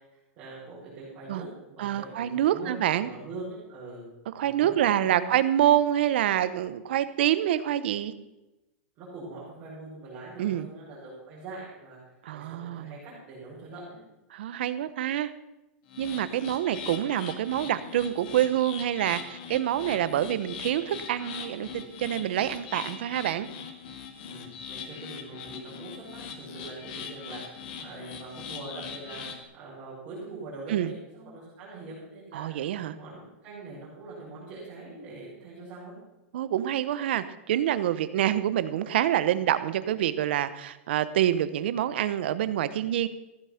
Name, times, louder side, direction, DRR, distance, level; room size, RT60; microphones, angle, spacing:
voice 1, 0.1-4.1 4.4-5.3 9.0-12.0 12.3-14.0 24.3-35.9, right 3 dB, 25° right, -10 dB, 5.9 m, -43 dB
voice 2, 1.8-3.1 4.3-8.1 10.4-10.6 12.2-12.9 14.3-15.3 16.0-23.5 30.7-30.9 32.3-32.9 36.3-43.1, right 11 dB, 55° right, 14 dB, 0.9 m, -26 dB
sound 1, 15.9-29.4, left 6 dB, 40° left, 1.8 m, -41 dB
15.0 x 10.0 x 5.9 m, 1.0 s
supercardioid pair, 180°, 7 cm